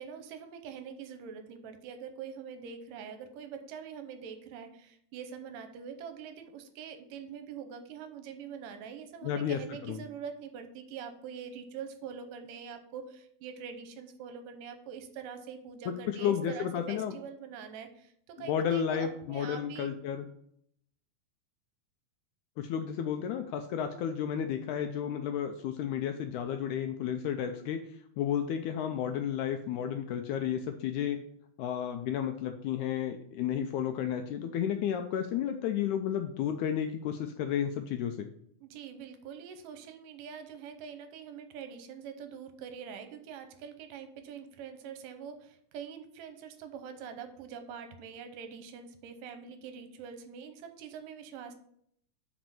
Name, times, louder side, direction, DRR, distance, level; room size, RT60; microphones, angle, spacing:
voice 1, 0.0-19.9 38.6-51.5, right 7 dB, 80° right, 8 dB, 2.4 m, -44 dB
voice 2, 9.2-9.6 9.9-10.0 16.1-17.1 18.4-20.3 22.6-27.8 28.2-31.2 31.6-38.3, left 9 dB, 80° left, 6 dB, 1.8 m, -32 dB
6.0 x 5.3 x 6.8 m, 0.69 s
omnidirectional pair, 3.9 m